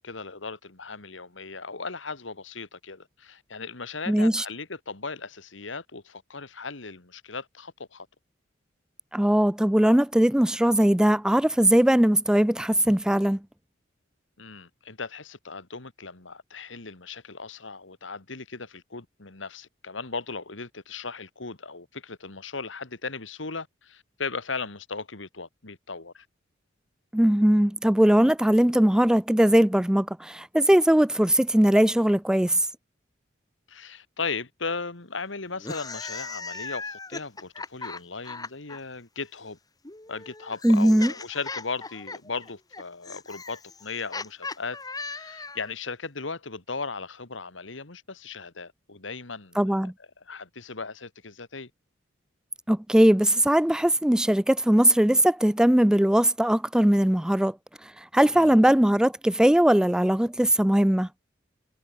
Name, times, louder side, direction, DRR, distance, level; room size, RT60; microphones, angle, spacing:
voice 1, 0.0-8.1 14.4-26.3 33.7-39.6 40.1-49.9 50.3-51.7 58.3-58.6, left 4 dB, 85° left, 2.1 m, -37 dB
voice 2, 4.1-4.5 9.1-13.4 27.1-32.6 40.6-41.1 49.6-49.9 52.7-57.6 57.8-61.1, right 1 dB, 5° right, 0.3 m, -20 dB
sound 1, 35.5-38.8 39.8-45.7, left 4 dB, 20° left, 1.4 m, -38 dB
head